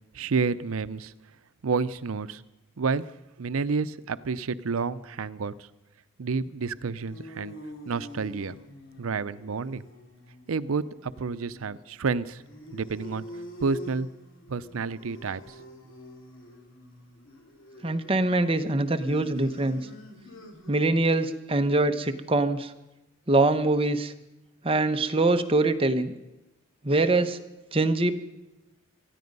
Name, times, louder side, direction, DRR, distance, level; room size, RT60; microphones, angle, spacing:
voice 1, 0.1-1.1 1.6-2.4 2.8-3.1 3.4-5.7 6.2-7.5 7.9-8.6 9.0-9.8 10.5-12.4 12.7-13.2 13.6-14.1 14.5-15.6, right 4 dB, 85° right, 15 dB, 0.6 m, -29 dB
sound 1, 6.6-21.1, equal, 70° left, 2.7 m, -46 dB
voice 2, 17.8-19.8 20.7-22.7 23.3-24.1 24.6-26.1 26.8-27.4 27.7-28.2, right 2 dB, 25° right, 8 dB, 0.8 m, -23 dB
19.0 x 14.0 x 5.3 m, 0.97 s
head